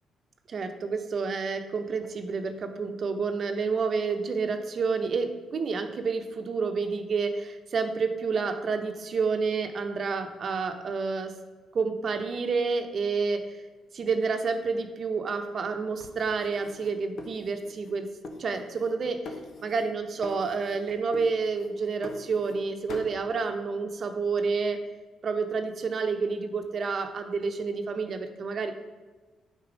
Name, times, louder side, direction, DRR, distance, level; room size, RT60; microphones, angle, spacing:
voice 1, 0.5-11.3 11.7-13.4 13.9-18.1 18.4-19.3 19.6-24.8 25.2-28.7, right 4 dB, 50° right, 6 dB, 0.9 m, -29 dB
sound 1, 16.0-17.9 18.2-19.0 19.2-19.9 20.2-20.8 21.1-22.6 22.9-23.2, left 3 dB, 65° left, 1.0 m, -43 dB
8.2 x 4.1 x 5.1 m, 1.3 s
cardioid pair, 90°, 0 cm